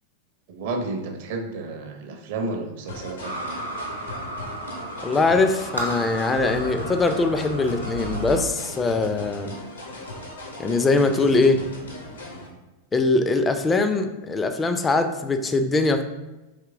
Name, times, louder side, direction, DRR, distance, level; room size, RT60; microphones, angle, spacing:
voice 1, 0.5-3.4, right 3 dB, 50° right, 4 dB, 0.5 m, -31 dB
sound 1, 2.9-12.5, left 1 dB, 75° left, 0.8 m, -38 dB
sound 2, 3.2-8.4, right 1 dB, 90° right, 0.8 m, -33 dB
voice 2, 5.0-9.6 10.6-11.6 12.9-16.0, left 3 dB, 15° left, 8 dB, 0.3 m, -22 dB
3.6 x 2.9 x 3.4 m, 1.1 s
figure-of-eight pair, 90°, 0 cm